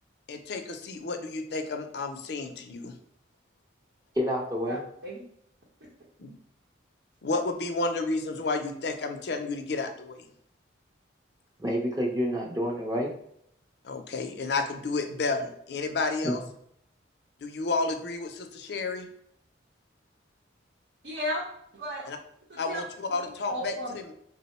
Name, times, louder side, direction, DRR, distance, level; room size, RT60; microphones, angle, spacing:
voice 1, 0.3-2.9 6.2-6.3 7.2-10.3 13.8-16.4 17.4-19.1 22.1-22.2 22.6-22.8 23.1-24.0, left 3 dB, 60° left, 6 dB, 0.5 m, -31 dB
voice 2, 4.2-4.8 11.6-13.1 16.2-16.3, equal, 20° right, 0 dB, 0.5 m, -28 dB
voice 3, 4.7-5.2 21.0-21.4 21.7-22.1 22.5-22.8 23.1-24.0, equal, 70° right, -5 dB, 0.8 m, -35 dB
3.6 x 2.0 x 4.1 m, 0.71 s
head